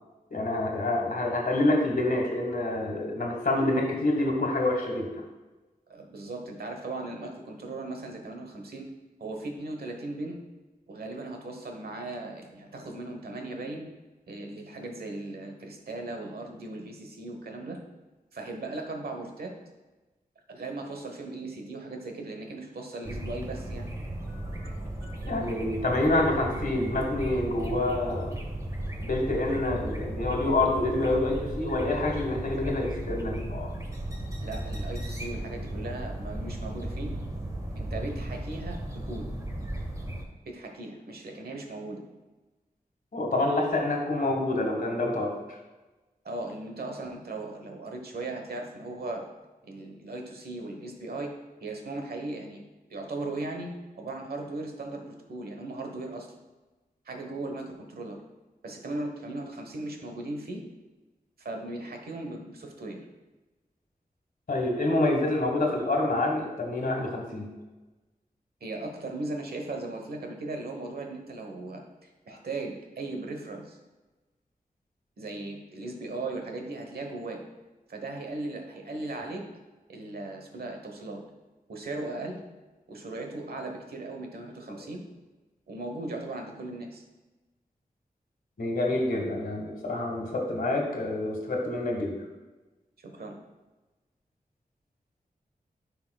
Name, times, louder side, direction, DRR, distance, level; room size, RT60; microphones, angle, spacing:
voice 1, 0.3-5.1 25.2-28.3 29.0-33.7 43.1-45.4 64.5-67.5 84.7-84.8 88.6-92.1, left 2 dB, 65° left, 1 dB, 1.5 m, -27 dB
voice 2, 5.9-8.9 9.2-10.4 10.9-13.9 14.3-17.8 18.3-19.5 20.5-23.9 24.2-25.4 34.4-37.1 37.8-39.3 40.4-42.0 46.2-49.2 49.6-51.3 51.6-52.6 52.9-56.3 57.1-58.2 58.6-60.6 61.4-63.0 68.6-73.8 75.2-77.4 77.9-79.4 79.9-81.2 81.7-82.4 82.9-85.0 85.7-87.0 93.0-93.3, right 2 dB, 90° right, 3 dB, 1.1 m, -37 dB
sound 1, 23.0-40.2, right 1 dB, 20° right, 1.1 m, -35 dB
9.9 x 5.7 x 2.3 m, 1.2 s
wide cardioid pair, 70°, 16 cm